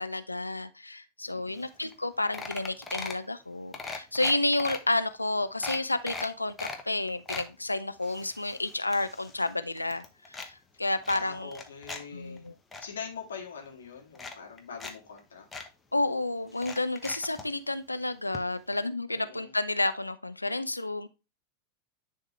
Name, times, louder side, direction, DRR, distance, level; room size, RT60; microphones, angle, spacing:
voice 1, 0.0-11.6 12.1-12.5 15.9-21.1, left 2 dB, 85° left, 0.5 m, -31 dB
voice 2, 1.3-1.6 11.1-12.5 12.8-15.5 19.1-19.5, left 6 dB, 70° left, 1.9 m, -43 dB
sound 1, 1.6-1.7 1.9-2.1 2.3-3.3 3.7-4.8 5.2-5.3 5.6-6.8 7.1-7.5 8.0-9.5 9.8-10.5 11.0-12.0 12.4-12.9 13.7-13.8 14.1-14.9 15.2-15.3 15.5-15.7 16.5-17.5 18.3-18.4 18.7-18.8, left 3 dB, 10° left, 1.1 m, -39 dB
10.0 x 3.6 x 3.2 m
figure-of-eight pair, 90°, 0 cm